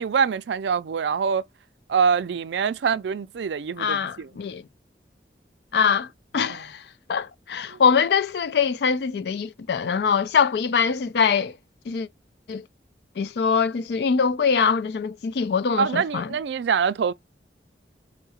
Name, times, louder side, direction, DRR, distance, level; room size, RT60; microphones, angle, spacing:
voice 1, 0.0-1.4 1.9-4.3 7.7-7.8 15.8-17.1, right 6 dB, 80° right, 0.4 m, -24 dB
voice 2, 3.8-4.6 5.7-6.1 6.3-6.8 7.1-11.6 11.9-12.1 12.5-12.7 13.2-16.3, left 6 dB, 70° left, 0.4 m, -23 dB
4.7 x 2.1 x 4.1 m
head